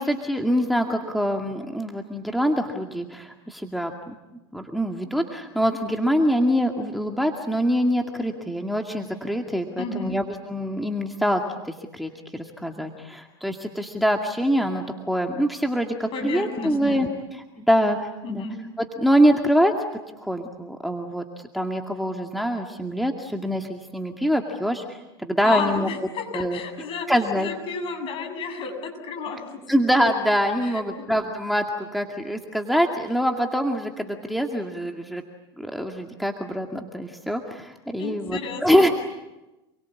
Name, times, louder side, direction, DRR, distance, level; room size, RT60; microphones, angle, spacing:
voice 1, 0.0-4.2 4.5-18.0 18.3-18.5 18.8-19.7 20.2-21.2 21.5-25.9 26.3-26.6 27.1-27.5 29.7-35.2 35.6-38.9, equal, ahead, 3 dB, 2.2 m, -24 dB
voice 2, 9.8-10.2 16.1-17.0 18.2-18.6 25.4-27.1 27.4-29.6 30.6-31.1 38.0-38.8, left 5 dB, 45° left, 5 dB, 7.3 m, -32 dB
28.5 x 22.5 x 8.6 m, 1.0 s
hypercardioid pair, 95°, 13 cm